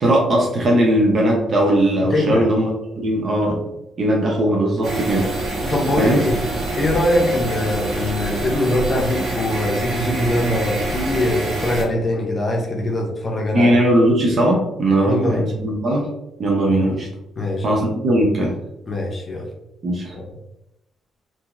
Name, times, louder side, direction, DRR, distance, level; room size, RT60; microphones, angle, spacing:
voice 1, 0.0-3.6 4.0-5.3 6.0-6.2 13.5-16.1 16.4-17.1 17.6-18.6 19.8-20.2, right 1 dB, 45° right, -2 dB, 0.7 m, -18 dB
voice 2, 2.1-2.4 5.6-6.4 6.8-13.8 15.1-15.5 17.4-17.8 18.9-19.5 20.1-20.3, left 1 dB, 35° left, 0 dB, 0.7 m, -22 dB
sound 1, 4.8-11.8, right 2 dB, 75° right, 1.2 m, -26 dB
2.8 x 2.6 x 2.4 m, 0.87 s
cardioid pair, 90°, 0 cm